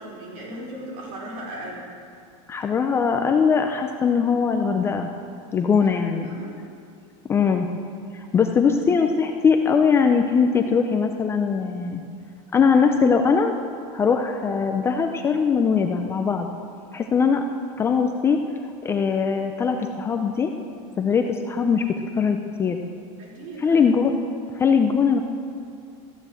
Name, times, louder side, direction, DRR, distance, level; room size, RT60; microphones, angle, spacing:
voice 1, 0.0-1.9 5.6-5.9 6.2-6.5 23.2-23.8, right 1 dB, 50° right, -4 dB, 4.4 m, -37 dB
voice 2, 2.5-5.1 5.5-6.3 7.3-7.7 8.1-12.0 12.5-13.5 13.9-16.5 16.9-17.4 17.8-18.4 18.8-20.5 21.0-21.9 22.2-22.8 23.6-24.1 24.5-25.2, left 6 dB, 15° left, 4 dB, 0.5 m, -21 dB
14.0 x 9.0 x 7.7 m, 2.4 s
supercardioid pair, 170°, 17 cm